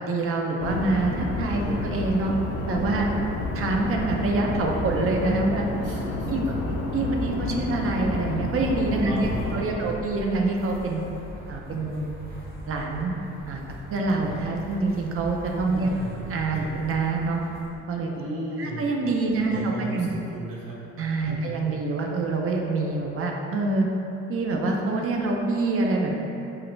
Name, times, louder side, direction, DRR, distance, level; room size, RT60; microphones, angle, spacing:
voice 1, 0.0-2.3 2.7-3.1 3.5-5.7 6.3-6.4 6.9-11.0 11.5-12.1 12.7-13.1 13.5-13.6 13.9-15.9 16.3-17.4 17.9-18.1 18.6-20.1 21.0-23.9 24.3-26.2, right 3 dB, 50° right, 1 dB, 0.4 m, -26 dB
sound 1, 0.6-9.6, left 2 dB, 85° left, 0.5 m, -30 dB
voice 2, 1.6-2.0 5.8-6.7 9.0-10.0 14.3-14.4 15.7-16.7 18.0-18.9 19.4-20.8 21.3-21.5, right 2 dB, 90° right, -5 dB, 0.7 m, -36 dB
sound 2, 9.1-17.8, equal, 30° right, 0.8 m, -42 dB
2.9 x 2.4 x 3.1 m, 2.8 s
cardioid pair, 90°, 30 cm